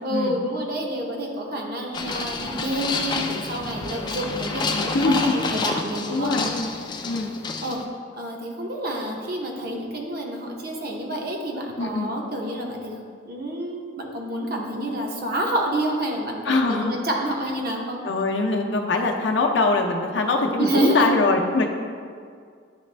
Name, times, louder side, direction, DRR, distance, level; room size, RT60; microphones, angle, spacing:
voice 1, 0.0-6.3 7.6-7.8 8.2-12.9 13.2-18.0 20.6-21.2, right 1 dB, 55° right, 0 dB, 0.8 m, -28 dB
sound 1, 1.9-7.9, left 3 dB, 25° left, 0.3 m, -29 dB
voice 2, 4.9-5.3 6.1-6.7 7.0-7.3 11.8-12.1 16.4-16.9 17.4-17.5 18.0-21.7, left 3 dB, 65° left, 2 dB, 0.6 m, -23 dB
9.8 x 3.3 x 3.3 m, 2.2 s
head